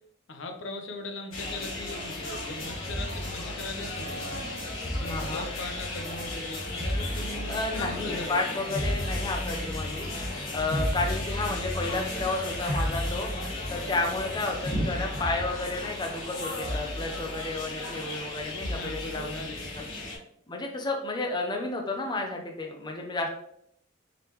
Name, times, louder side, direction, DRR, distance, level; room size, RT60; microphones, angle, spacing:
voice 1, 0.3-4.4 5.0-8.8 18.6-19.8, left 2 dB, 70° left, 5 dB, 0.6 m, -40 dB
sound 1, 1.3-20.2, left 1 dB, 85° left, 1.6 m, -33 dB
voice 2, 4.9-5.5 7.5-10.1 10.5-13.3 13.7-19.4 20.5-23.3, left 2 dB, 20° left, 1 dB, 0.5 m, -32 dB
5.0 x 3.2 x 3.0 m, 0.72 s
head